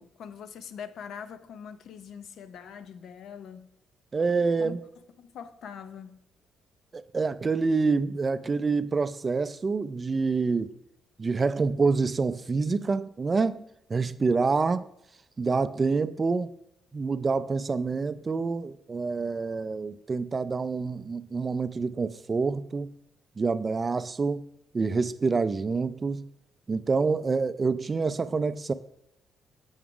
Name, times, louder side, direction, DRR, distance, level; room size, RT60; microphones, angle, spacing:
voice 1, 0.0-3.7 4.6-4.8 5.2-6.2, left 7 dB, 70° left, 0.5 m, -43 dB
voice 2, 4.1-4.8 6.9-10.7 11.2-13.6 13.9-14.9 15.4-16.5 16.9-22.9 23.4-24.4 24.7-26.3 26.7-28.7, right 4 dB, 30° right, 0.3 m, -27 dB
7.1 x 4.8 x 3.7 m
cardioid pair, 90°, 0 cm